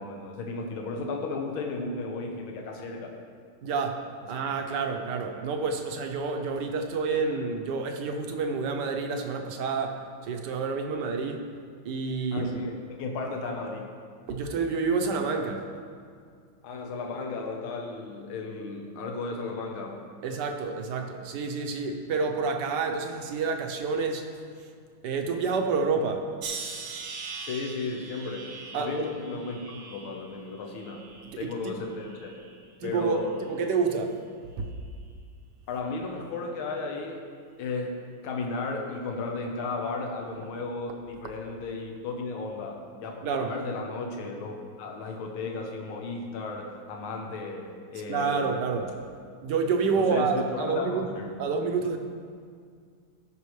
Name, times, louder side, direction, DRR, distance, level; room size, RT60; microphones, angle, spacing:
voice 1, 0.0-3.1 4.2-4.3 12.3-13.9 16.6-20.0 27.4-31.1 31.4-32.5 32.8-33.4 35.7-37.3 37.6-38.0 38.2-48.7 50.0-51.4, left 3 dB, 80° left, 1 dB, 1.8 m, -34 dB
voice 2, 3.6-4.0 4.3-11.5 11.8-12.5 14.3-15.7 20.2-24.3 25.0-26.3 28.7-29.1 31.3-31.7 32.8-34.2 34.6-34.7 43.2-43.5 48.1-48.9 49.4-51.1 51.4-52.0, right 4 dB, 60° right, 4 dB, 1.3 m, -28 dB
sound 1, 26.4-31.6 32.0-32.7 33.4-33.7, right 4 dB, 85° right, 1.9 m, -41 dB
18.0 x 6.1 x 3.2 m, 2.1 s
omnidirectional pair, 2.3 m